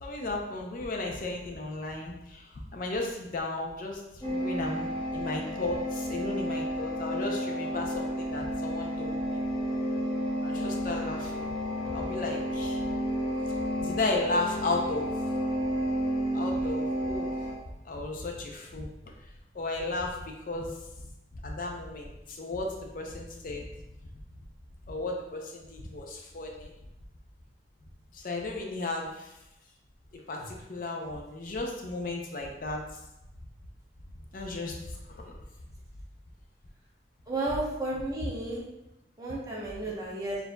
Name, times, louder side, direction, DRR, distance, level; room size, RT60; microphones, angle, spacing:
voice 1, 0.0-9.4 10.4-11.5 11.9-12.8 13.8-15.1 16.3-17.3 17.9-18.9 19.5-20.2 20.5-20.8 21.4-23.7 24.9-26.7 28.1-29.3 30.3-32.8 34.3-35.4, left 2 dB, 45° left, 1 dB, 0.5 m, -34 dB
sound 1, 4.2-17.5, equal, 30° left, 1.3 m, -31 dB
voice 2, 37.3-38.6 39.2-40.4, right 2 dB, 20° right, -5 dB, 0.9 m, -32 dB
4.4 x 4.0 x 2.2 m, 0.90 s
head